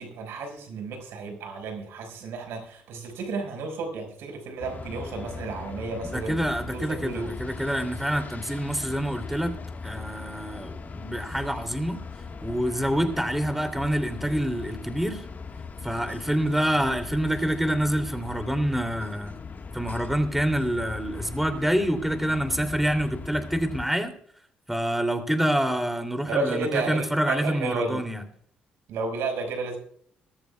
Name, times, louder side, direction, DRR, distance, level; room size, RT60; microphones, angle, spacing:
voice 1, 0.0-6.4 6.7-7.3 26.3-28.0 28.9-29.8, right 3 dB, 70° right, 5.4 m, -32 dB
sound 1, 4.6-23.9, left 4 dB, 40° left, 1.6 m, -39 dB
voice 2, 6.1-9.5 9.8-12.0 12.4-15.2 15.8-19.3 19.7-24.1 24.7-28.2, equal, 5° right, 2.9 m, -27 dB
21.0 x 14.0 x 2.4 m
hypercardioid pair, 50°, 4 cm